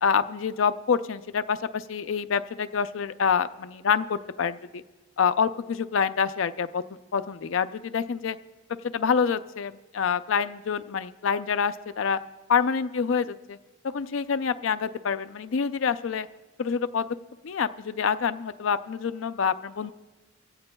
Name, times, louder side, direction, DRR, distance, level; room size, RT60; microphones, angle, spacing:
voice 1, 0.0-4.8 5.2-6.8 7.1-8.4 8.8-12.2 12.5-13.6 13.9-16.3 16.6-17.1 17.4-19.9, left 6 dB, 85° left, 11 dB, 0.5 m, -26 dB
23.5 x 15.5 x 2.3 m, 1.2 s
head